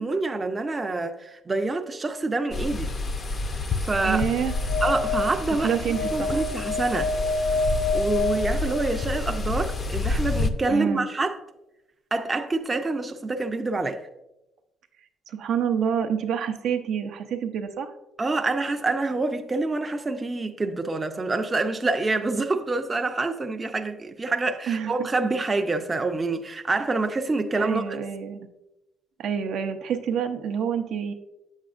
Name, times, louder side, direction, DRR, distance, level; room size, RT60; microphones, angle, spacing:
voice 1, 0.0-2.9 3.5-4.2 4.8-5.7 6.1-7.1 7.9-11.4 12.1-14.0 18.2-27.8, right 3 dB, 20° right, 0.5 m, -26 dB
sound 1, 2.5-10.5, left 2 dB, 35° left, 0.5 m, -29 dB
voice 2, 4.0-4.5 5.6-6.4 10.7-11.1 15.3-17.9 24.7-24.9 27.6-28.5 29.2-31.1, right 7 dB, 65° right, 0.6 m, -27 dB
sound 2, 4.4-9.3, left 3 dB, 80° left, 0.8 m, -28 dB
8.5 x 7.2 x 2.5 m
cardioid pair, 115°, 0 cm